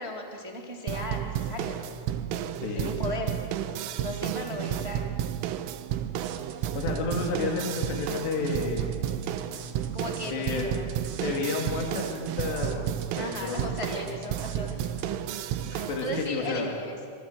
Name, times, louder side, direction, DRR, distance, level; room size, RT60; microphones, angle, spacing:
voice 1, 0.0-1.9 2.7-3.3 4.0-5.1 9.9-10.9 13.2-14.8 16.0-17.0, left 1 dB, 10° right, 0 dB, 2.0 m, -36 dB
sound 1, 0.9-16.2, right 10 dB, 80° right, 3.5 m, -32 dB
voice 2, 2.5-3.0 6.7-9.0 10.3-10.7 11.2-13.7 14.0-14.4 15.7-16.7, left 4 dB, 60° left, 1 dB, 4.5 m, -31 dB
sound 2, 6.2-15.0, right 9 dB, 60° right, 3.1 m, -47 dB
26.0 x 26.0 x 8.0 m, 2.3 s
omnidirectional pair, 5.9 m